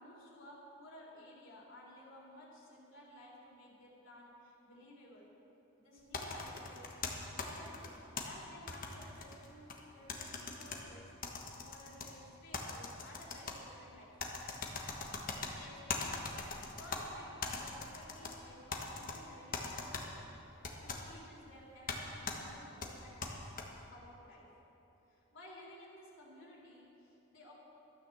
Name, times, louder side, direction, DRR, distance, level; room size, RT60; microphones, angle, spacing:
voice 1, 0.0-5.3 5.8-6.9 7.4-11.1 11.4-14.4 15.4-24.5 25.1-27.5, left 1 dB, 65° left, -4 dB, 3.8 m, -55 dB
sound 1, 6.1-8.2 8.7-9.8 10.1-10.8 11.2-12.1 12.5-13.6 14.2-15.5 15.9-17.0 17.4-18.3 18.7-19.2 19.5-20.0 20.6-21.0 21.9-22.0 22.3-22.4 22.8-23.6, left 4 dB, 40° left, 1.3 m, -40 dB
12.5 x 9.6 x 7.1 m, 2.9 s
head